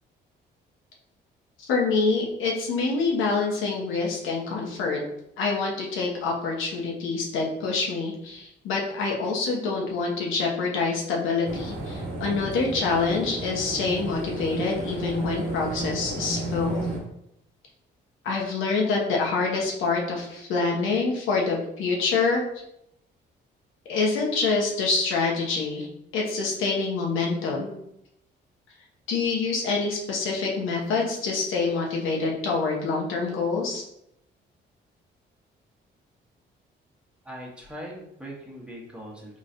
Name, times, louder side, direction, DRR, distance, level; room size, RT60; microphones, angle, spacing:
voice 1, 1.6-5.0 5.4-16.9 18.2-22.4 23.9-25.9 26.1-27.8 29.1-33.8, left 4 dB, 85° left, -1 dB, 1.0 m, -26 dB
sound 1, 11.4-17.0, right 2 dB, 85° right, 1.2 m, -33 dB
voice 2, 37.2-39.4, equal, 5° right, -3 dB, 1.2 m, -40 dB
3.9 x 3.2 x 2.5 m, 0.78 s
cardioid pair, 90°, 20 cm